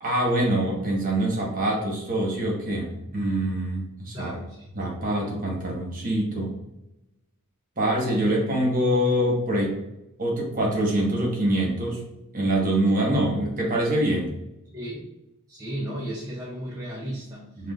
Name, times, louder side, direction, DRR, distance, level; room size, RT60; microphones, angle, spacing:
voice 1, 0.0-4.3 4.7-6.5 7.8-9.8 10.2-12.0 12.3-14.3 17.6-17.7, right 1 dB, 40° right, -2 dB, 1.1 m, -24 dB
voice 2, 4.1-4.7 14.7-15.1 15.5-17.5, right 1 dB, 15° right, -6 dB, 0.5 m, -34 dB
6.0 x 2.3 x 2.4 m, 0.89 s
head